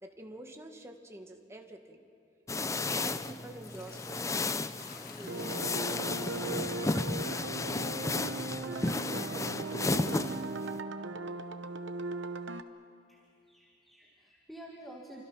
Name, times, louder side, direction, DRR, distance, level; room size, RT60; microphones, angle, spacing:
voice 1, 0.0-2.0 2.7-6.2, right 1 dB, 15° right, 3 dB, 1.8 m, -48 dB
sound 1, 2.5-10.8, left 3 dB, 15° left, 0.5 m, -33 dB
Sink (filling or washing) / Liquid, 3.6-10.5, left 5 dB, 55° left, 1.8 m, -56 dB
sound 2, 5.2-12.6, right 2 dB, 75° right, 1.0 m, -38 dB
voice 2, 13.1-15.2, right 1 dB, ahead, -2 dB, 2.0 m, -50 dB
29.0 x 25.5 x 5.8 m, 2.5 s
head